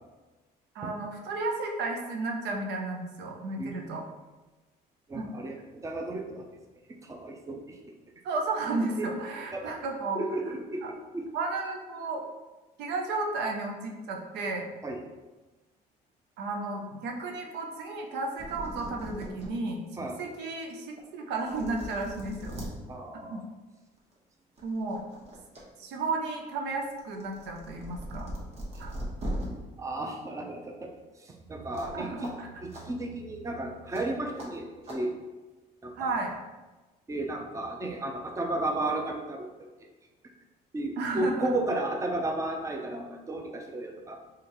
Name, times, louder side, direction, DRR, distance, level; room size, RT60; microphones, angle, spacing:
voice 1, 0.7-4.0 5.1-5.3 8.2-10.2 10.5-10.6 10.8-10.9 11.3-12.2 12.8-14.7 16.4-19.8 20.2-22.6 23.3-23.4 24.6-25.0 25.8-28.3 28.8-28.9 31.9-32.6 36.0-36.3 41.0-41.5, right 3 dB, 85° right, 2 dB, 0.6 m, -33 dB
voice 2, 5.1-6.5 7.0-7.8 8.8-9.1 9.5-9.7 10.1-11.3 14.8-15.0 20.0-20.2 22.9-23.4 29.8-30.9 31.2-32.3 32.6-35.1 35.8-36.1 37.1-39.7 40.7-44.2, right 2 dB, 20° right, 2 dB, 0.5 m, -33 dB
sound 1, 18.1-18.2 18.4-19.5 20.0-20.1 21.0-21.1 21.4-22.7 24.0-24.2 24.6-25.6 26.0-29.5 31.7-32.0 32.2-32.3 32.7-32.8 33.9-34.0 34.4-34.5 34.8-35.0, equal, 40° right, 1.1 m, -39 dB
3.7 x 3.2 x 3.0 m, 1.2 s
cardioid pair, 110°, 17 cm